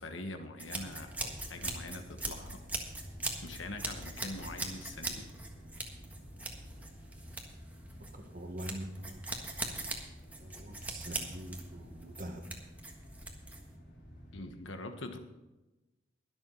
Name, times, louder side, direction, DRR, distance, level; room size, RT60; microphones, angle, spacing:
voice 1, 0.0-2.6 3.4-5.3 14.3-15.2, left 2 dB, 75° left, 7 dB, 1.4 m, -43 dB
sound 1, 0.6-14.4, equal, 55° left, 3.2 m, -51 dB
sound 2, 0.6-13.7, right 2 dB, 10° right, 1.5 m, -41 dB
voice 2, 8.1-9.3 10.4-12.4, right 1 dB, 45° right, 4 dB, 1.6 m, -44 dB
22.0 x 7.4 x 4.0 m, 1.1 s
head